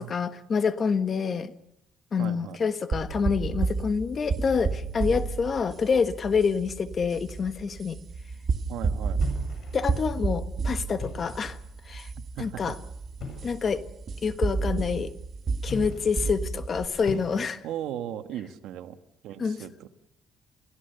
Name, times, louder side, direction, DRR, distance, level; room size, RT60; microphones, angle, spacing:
voice 1, 0.0-1.5 2.1-8.0 9.7-11.6 11.8-12.1 12.4-12.8 13.4-13.8 14.2-15.1 15.6-17.6 19.4-19.6, left 5 dB, 35° left, 11 dB, 1.4 m, -27 dB
voice 2, 2.2-2.6 8.7-9.2 12.4-12.7 17.6-19.0 19.2-19.9, right 11 dB, 80° right, 8 dB, 1.6 m, -36 dB
sound 1, 2.9-16.9, right 4 dB, 40° right, 2.0 m, -31 dB
sound 2, 9.2-10.0 10.9-11.6 13.2-13.6 15.6-16.3 17.0-17.8, left 4 dB, 55° left, 8.0 m, -39 dB
29.5 x 16.5 x 6.8 m, 0.79 s
cardioid pair, 120°, 0 cm